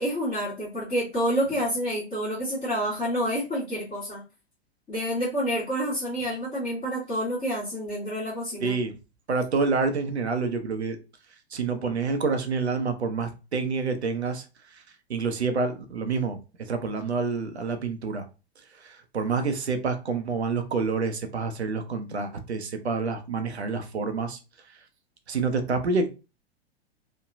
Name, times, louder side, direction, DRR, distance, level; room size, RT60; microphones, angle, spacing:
voice 1, 0.0-4.2 4.9-8.8 11.8-12.0, equal, 20° left, 1.1 m, -28 dB
voice 2, 8.6-8.9 9.3-11.0 11.5-14.4 15.1-18.2 18.8-24.4 25.3-26.1, right 4 dB, 85° right, 0.6 m, -28 dB
3.1 x 2.1 x 2.4 m
figure-of-eight pair, 100°, 32 cm